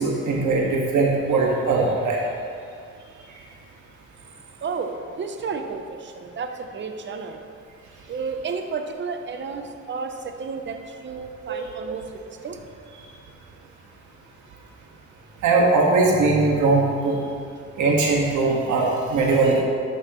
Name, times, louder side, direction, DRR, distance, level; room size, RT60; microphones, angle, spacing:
voice 1, 0.0-2.2 11.4-11.6 15.4-17.2 17.8-19.6, right 3 dB, 75° right, -2 dB, 1.8 m, -20 dB
voice 2, 4.6-7.4 8.1-12.6, right 5 dB, 40° right, 6 dB, 0.8 m, -32 dB
12.0 x 6.5 x 3.1 m, 2.3 s
cardioid pair, 90°, 30 cm